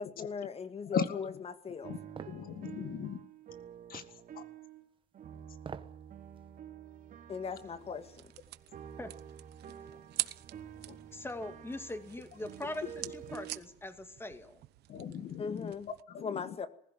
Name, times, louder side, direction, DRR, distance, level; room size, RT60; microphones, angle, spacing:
voice 1, 0.0-1.9 7.3-8.1 15.4-15.9 16.2-16.7, left 5 dB, 35° left, 2.1 m, -39 dB
voice 2, 0.9-1.3 1.9-2.0 2.3-3.2 3.9-4.0 4.3-4.4 10.9-11.0 14.9-15.7 16.1-16.6, left 7 dB, 60° left, 1.9 m, -37 dB
sound 1, 1.8-4.9 5.1-13.6, right 9 dB, 55° right, 2.8 m, -49 dB
sound 2, 2.2-2.4 3.9-4.2 5.6-6.0 6.4-6.5, right 5 dB, 30° right, 1.5 m, -44 dB
sound 3, 7.6-16.0, right 15 dB, 75° right, 1.1 m, -45 dB
voice 3, 11.1-14.6, left 1 dB, 15° left, 2.4 m, -42 dB
20.0 x 15.5 x 9.1 m
cardioid pair, 110°, 17 cm